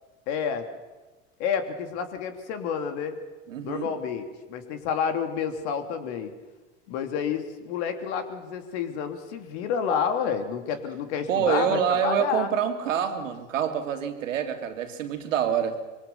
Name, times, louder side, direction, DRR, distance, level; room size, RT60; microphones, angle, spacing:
voice 1, 0.3-0.7 1.4-3.2 3.6-6.3 6.9-12.5, left 7 dB, 60° left, 6 dB, 3.2 m, -29 dB
voice 2, 3.5-3.9 11.3-15.8, right 8 dB, 75° right, 6 dB, 2.8 m, -26 dB
25.0 x 23.0 x 7.1 m, 1.2 s
hypercardioid pair, 85°, 39 cm